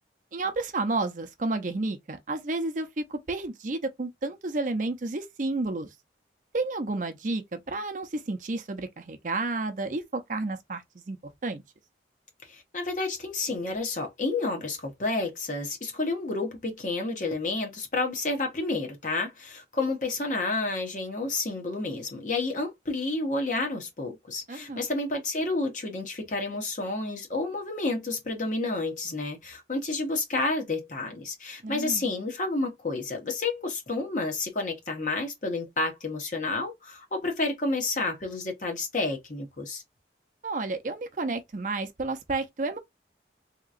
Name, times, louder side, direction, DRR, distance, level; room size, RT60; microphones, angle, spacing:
voice 1, 0.3-5.9 6.5-11.2 11.4-11.6 24.5-24.9 31.6-32.0 40.4-42.8, right 2 dB, 45° right, 0.5 m, -31 dB
voice 2, 12.4-39.8, left 3 dB, 45° left, 1.0 m, -30 dB
3.7 x 2.9 x 2.4 m
head